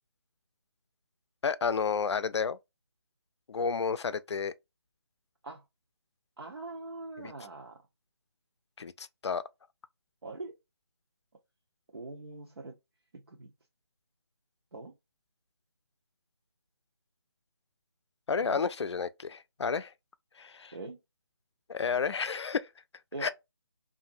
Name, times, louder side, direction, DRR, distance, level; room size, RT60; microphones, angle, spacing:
voice 1, 1.4-2.6 3.5-4.5 7.2-7.3 8.8-9.4 18.3-19.9 20.4-20.7 21.7-22.7 23.2-23.3, left 5 dB, 85° left, 0.4 m, -31 dB
voice 2, 6.4-7.8 10.2-10.6 11.9-12.8 13.1-13.5 14.7-14.9 18.4-18.6 20.7-21.0 23.1-23.3, right 2 dB, 65° right, 0.7 m, -42 dB
2.8 x 2.5 x 2.4 m
hypercardioid pair, 180°, 14 cm